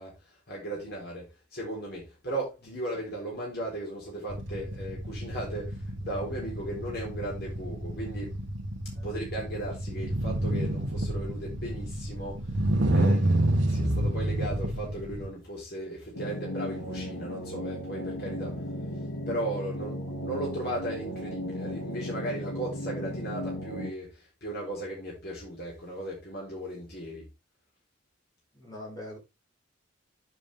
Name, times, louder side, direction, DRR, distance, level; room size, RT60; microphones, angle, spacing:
voice 1, 0.0-8.3 9.0-18.7 18.9-27.3, right 1 dB, 50° left, 4.2 m, -37 dB
sound 1, 4.3-15.3, right 1 dB, 65° right, 1.4 m, -29 dB
sound 2, 16.1-23.9, equal, 70° left, 1.8 m, -36 dB
voice 2, 28.5-29.2, left 1 dB, 20° left, 6.3 m, -43 dB
10.0 x 7.5 x 3.5 m
head